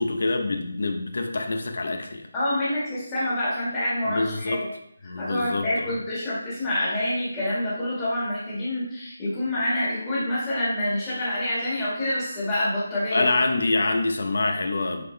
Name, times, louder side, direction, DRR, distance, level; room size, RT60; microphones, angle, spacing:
voice 1, 0.0-2.2 4.0-4.7 5.0-5.9 13.1-15.0, left 2 dB, 55° left, 5 dB, 1.0 m, -26 dB
voice 2, 2.3-4.6 5.2-13.3, left 1 dB, 10° left, -10 dB, 1.9 m, -27 dB
9.6 x 3.8 x 3.4 m, 0.75 s
figure-of-eight pair, 180°, 0 cm